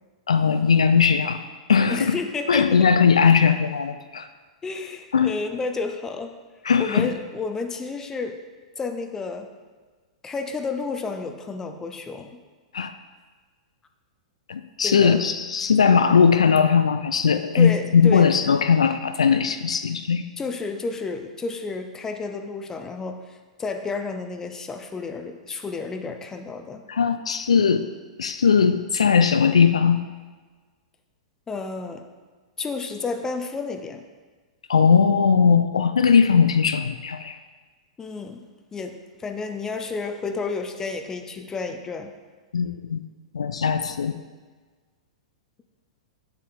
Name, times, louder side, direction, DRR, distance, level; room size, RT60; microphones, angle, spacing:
voice 1, 0.3-1.4 1.7-2.2 2.5-4.3 5.1-5.3 6.6-7.1 12.7-12.9 14.5-20.3 26.9-27.9 28.2-30.0 34.7-37.4 42.5-43.0 43.3-44.1, left 6 dB, 70° left, 9 dB, 0.3 m, -19 dB
voice 2, 1.9-2.9 4.6-6.4 6.8-8.4 8.8-9.5 10.2-12.4 14.8-15.3 17.6-18.3 20.4-26.8 31.5-32.0 32.6-34.0 38.0-38.5 38.7-42.1, left 4 dB, 15° left, 7 dB, 0.6 m, -31 dB
8.3 x 7.2 x 2.6 m, 1.4 s
figure-of-eight pair, 100°, 3 cm